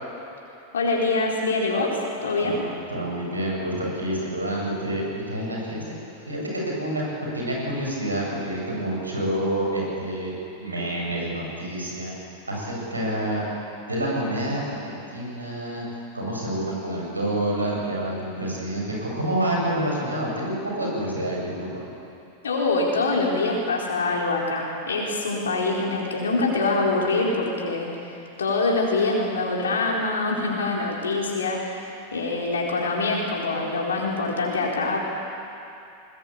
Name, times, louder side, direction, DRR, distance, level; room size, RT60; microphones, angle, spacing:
voice 1, 0.7-2.6 22.4-35.0, left 3 dB, 70° left, -2 dB, 4.3 m, -25 dB
voice 2, 2.4-5.8 6.3-7.0 7.3-10.3 10.6-13.4 13.9-15.8 16.1-21.8, right 1 dB, 80° right, -3 dB, 7.6 m, -28 dB
21.0 x 20.5 x 8.5 m, 2.7 s
figure-of-eight pair, 90°, 0 cm